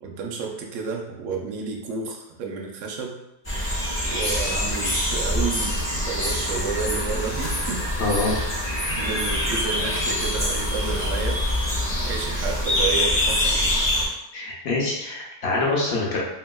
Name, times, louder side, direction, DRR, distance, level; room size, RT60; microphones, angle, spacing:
voice 1, 0.0-3.2 4.0-7.8 8.2-8.4 8.8-11.5 12.0-13.7, right 5 dB, 85° right, 1 dB, 0.9 m, -31 dB
sound 1, 3.4-14.1, left 1 dB, 15° left, 0.6 m, -25 dB
voice 2, 8.0-8.4 14.3-16.2, left 2 dB, 60° left, -3 dB, 0.9 m, -25 dB
2.9 x 2.7 x 2.2 m, 0.89 s
omnidirectional pair, 1.3 m